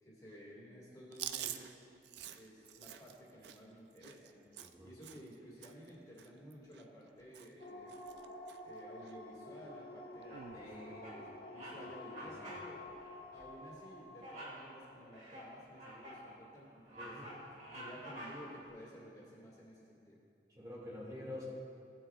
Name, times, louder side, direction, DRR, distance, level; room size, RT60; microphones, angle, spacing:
voice 1, 0.0-1.8 2.3-4.5 4.8-8.0 8.6-12.9 13.3-17.2 17.7-20.2, equal, 20° left, -5 dB, 1.9 m, -54 dB
Chewing mastication, 1.1-5.4 5.6-5.9 6.2-7.1 7.3-7.6 7.9-8.6 9.0-9.1 10.2-10.6, right 11 dB, 80° right, 0.4 m, -47 dB
voice 2, 4.6-4.9 10.5-11.3 11.7-11.8 12.4-12.5 17.0-17.3 20.5-21.4, left 1 dB, 20° right, -6 dB, 1.9 m, -48 dB
sound 1, 7.6-15.7, left 1 dB, 65° left, 1.1 m, -51 dB
Bird vocalization bird call bird song, 10.3-10.7 11.0-11.2 11.5-11.8 12.1-12.7 13.0-13.2 14.2-14.6 15.1-16.3 16.7-18.6, right 1 dB, 40° right, 1.9 m, -49 dB
16.0 x 7.5 x 2.4 m, 2.5 s
head